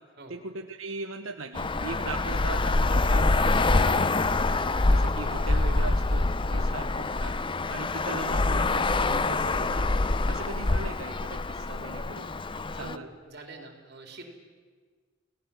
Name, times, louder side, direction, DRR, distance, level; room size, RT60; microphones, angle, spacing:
voice 1, 0.3-4.3 4.8-7.4 7.7-10.0 10.3-12.3 12.8-13.1, right 3 dB, 80° right, 5 dB, 1.1 m, -39 dB
Traffic noise roadway noise, 1.6-13.0, left 2 dB, 25° left, 0.6 m, -25 dB
voice 2, 6.5-7.1 12.8-14.2, right 2 dB, 55° right, 3 dB, 4.2 m, -46 dB
29.0 x 18.0 x 7.5 m, 1.5 s
head